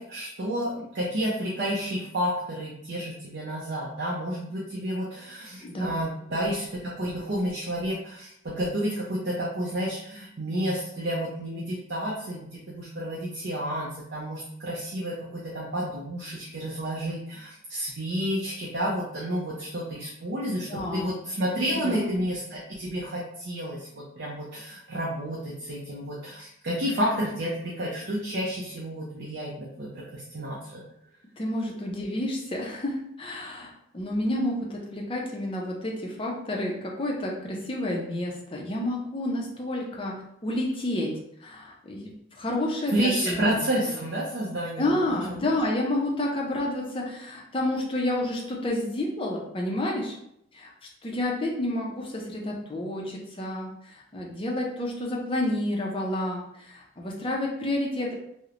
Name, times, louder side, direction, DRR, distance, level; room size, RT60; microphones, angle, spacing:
voice 1, 0.0-30.8 42.9-45.0 45.3-45.5, equal, 55° right, -5 dB, 0.5 m, -30 dB
voice 2, 5.6-5.9 20.7-21.1 21.7-22.0 31.4-42.1 42.3-43.5 43.9-44.0 44.8-50.1 50.5-50.7 51.0-58.1, left 1 dB, 25° left, -1 dB, 0.4 m, -30 dB
2.9 x 2.0 x 2.4 m, 0.75 s
head